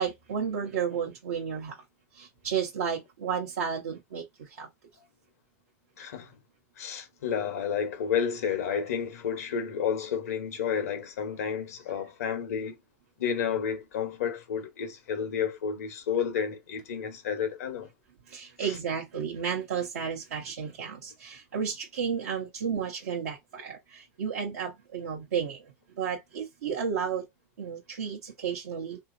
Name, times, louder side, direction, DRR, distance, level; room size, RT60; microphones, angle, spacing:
voice 1, 0.0-1.7 2.2-4.7 18.3-25.6 26.0-27.2 27.6-29.0, right 7 dB, 85° right, 0.8 m, -32 dB
voice 2, 6.0-6.4 6.8-12.8 13.2-17.9 18.6-18.8, left 7 dB, 85° left, 0.8 m, -31 dB
2.9 x 2.7 x 2.5 m
hypercardioid pair, 105°, 8 cm